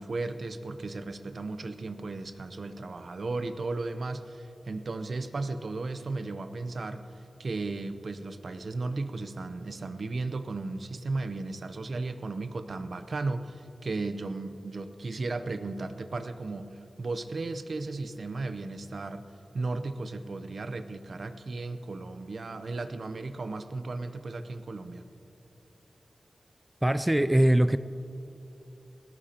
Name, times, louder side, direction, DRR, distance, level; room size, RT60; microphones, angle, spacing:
voice 1, 0.0-7.1 7.4-19.2 19.5-25.0, right 3 dB, 60° right, 10 dB, 0.7 m, -35 dB
voice 2, 26.8-27.8, right 1 dB, 10° right, 12 dB, 0.3 m, -22 dB
20.5 x 17.0 x 2.9 m, 2.9 s
wide cardioid pair, 85°, 0 cm